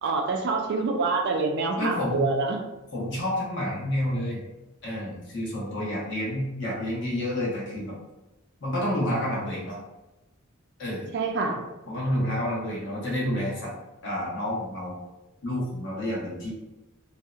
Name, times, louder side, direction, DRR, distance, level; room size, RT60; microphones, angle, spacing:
voice 1, 0.0-2.6 11.1-11.6, right 3 dB, 55° right, 2 dB, 0.3 m, -26 dB
voice 2, 1.8-2.3 2.9-4.4 4.8-8.0 8.6-9.8 10.8-11.1 11.8-13.7 14.0-15.0 15.4-16.5, left 1 dB, 60° left, -5 dB, 0.8 m, -29 dB
2.6 x 2.0 x 2.3 m, 1.0 s
head